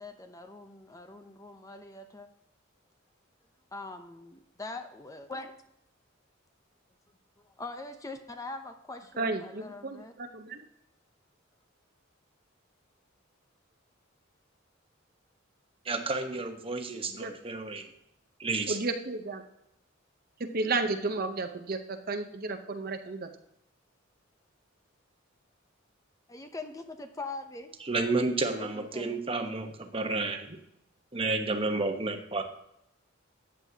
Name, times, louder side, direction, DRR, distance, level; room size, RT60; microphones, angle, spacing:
voice 1, 0.0-2.3 3.7-5.5 7.6-10.1 26.3-27.7 28.6-29.2, left 3 dB, 15° left, 7 dB, 0.7 m, -42 dB
voice 2, 9.2-10.6 17.1-17.3 18.7-19.4 20.5-23.3, right 3 dB, 50° right, 7 dB, 0.8 m, -33 dB
voice 3, 15.8-17.9 18.4-18.8 27.8-30.6 31.1-32.4, right 3 dB, 30° right, 5 dB, 1.1 m, -31 dB
14.0 x 9.0 x 2.8 m, 0.79 s
head